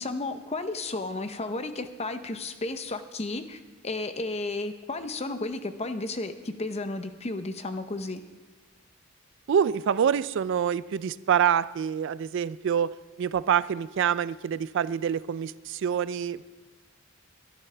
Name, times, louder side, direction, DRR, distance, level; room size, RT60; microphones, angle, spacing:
voice 1, 0.0-8.2, left 2 dB, 30° left, 9 dB, 0.7 m, -33 dB
voice 2, 9.5-16.5, right 8 dB, 55° right, 17 dB, 0.3 m, -26 dB
21.5 x 12.0 x 3.4 m, 1.2 s
head